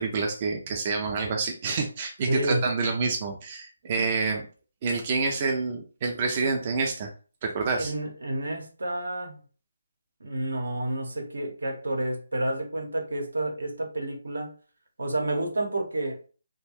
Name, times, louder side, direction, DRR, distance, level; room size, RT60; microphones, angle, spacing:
voice 1, 0.0-4.4 4.8-7.1 7.4-7.9, right 4 dB, 30° right, 2 dB, 0.4 m, -28 dB
voice 2, 2.3-2.6 7.8-9.4 10.2-14.5 15.0-16.2, right 1 dB, 80° right, 3 dB, 0.9 m, -30 dB
2.5 x 2.1 x 3.3 m, 0.38 s
hypercardioid pair, 160°, 0 cm